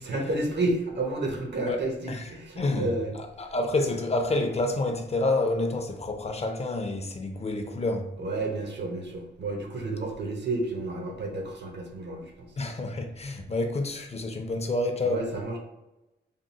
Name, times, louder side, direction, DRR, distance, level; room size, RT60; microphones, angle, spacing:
voice 1, 0.0-3.1 8.2-12.2 15.0-15.6, right 2 dB, 75° right, 0.8 m, -31 dB
voice 2, 2.6-8.1 12.6-15.2, left 2 dB, 35° left, 0.4 m, -28 dB
3.6 x 2.4 x 4.0 m
wide cardioid pair, 120°, 18 cm